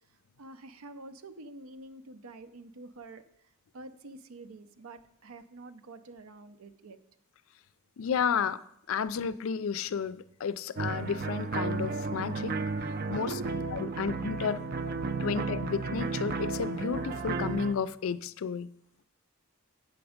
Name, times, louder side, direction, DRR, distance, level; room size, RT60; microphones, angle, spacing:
voice 1, 0.4-3.2 3.7-7.0 13.0-14.1 15.1-15.4, right 2 dB, 85° right, 11 dB, 0.6 m, -46 dB
voice 2, 8.0-8.6 8.9-12.5 12.9-13.3 13.7-14.6 15.2-18.7, left 6 dB, 75° left, 16 dB, 0.4 m, -32 dB
sound 1, 10.8-17.7, right 4 dB, 45° right, 0.5 m, -33 dB
8.5 x 7.0 x 5.0 m, 0.75 s
head